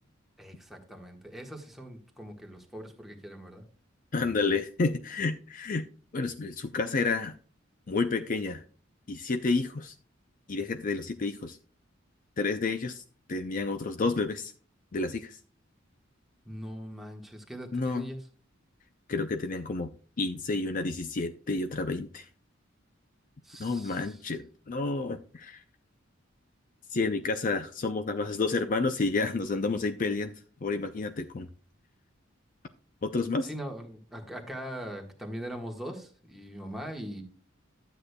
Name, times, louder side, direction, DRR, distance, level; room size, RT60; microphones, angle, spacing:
voice 1, 0.4-3.6 16.4-18.3 23.4-24.2 33.4-37.2, equal, ahead, 1 dB, 1.5 m, -41 dB
voice 2, 4.1-5.9 6.1-7.4 7.9-8.6 9.1-9.9 10.5-11.6 12.4-13.0 13.3-14.5 14.9-15.4 17.7-18.0 19.1-19.9 20.2-22.3 23.6-25.6 26.9-30.3 30.6-31.5 33.0-33.5, left 3 dB, 45° left, 8 dB, 0.5 m, -30 dB
12.0 x 8.1 x 2.2 m, 0.41 s
head